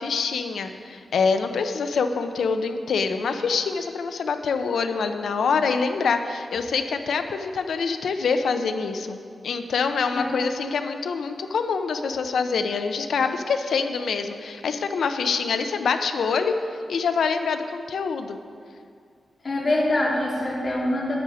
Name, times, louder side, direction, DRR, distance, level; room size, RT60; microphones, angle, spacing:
voice 1, 0.0-9.2 9.4-16.6 16.9-18.4, left 5 dB, 90° left, 8 dB, 0.6 m, -25 dB
voice 2, 19.4-21.2, left 1 dB, 45° left, -4 dB, 2.6 m, -24 dB
9.9 x 9.7 x 5.0 m, 2.3 s
wide cardioid pair, 125°, 0 cm